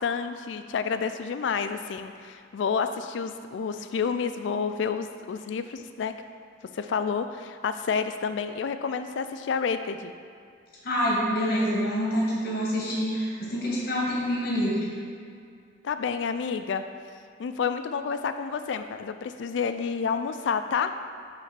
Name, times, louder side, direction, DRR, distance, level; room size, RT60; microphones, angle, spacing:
voice 1, 0.0-6.1 6.7-10.1 15.8-16.8 17.4-20.9, left 6 dB, 75° left, 9 dB, 0.3 m, -29 dB
voice 2, 10.8-14.9, equal, 50° left, -5 dB, 1.6 m, -26 dB
6.0 x 3.4 x 5.7 m, 2.3 s
head